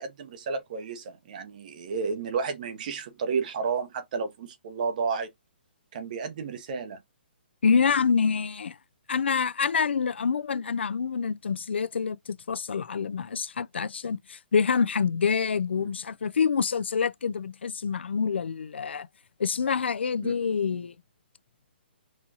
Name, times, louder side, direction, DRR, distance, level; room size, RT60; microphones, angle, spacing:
voice 1, 0.0-5.3 5.9-7.0 15.8-15.9 20.2-20.3, right 5 dB, 45° right, 0.9 m, -32 dB
voice 2, 7.6-8.8 9.1-19.1 19.4-20.9, left 6 dB, 90° left, 0.4 m, -26 dB
4.1 x 2.4 x 2.8 m
hypercardioid pair, 155°, 6 cm